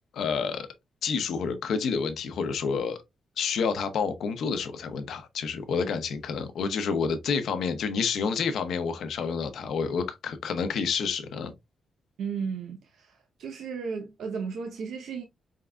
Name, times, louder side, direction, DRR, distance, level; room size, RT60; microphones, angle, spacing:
voice 1, 0.1-0.7 1.0-3.0 3.4-11.5, left 5 dB, 75° left, 0.8 m, -29 dB
voice 2, 12.2-15.2, right 6 dB, 85° right, 0.7 m, -34 dB
4.6 x 3.7 x 2.2 m
cardioid pair, 115°, 0 cm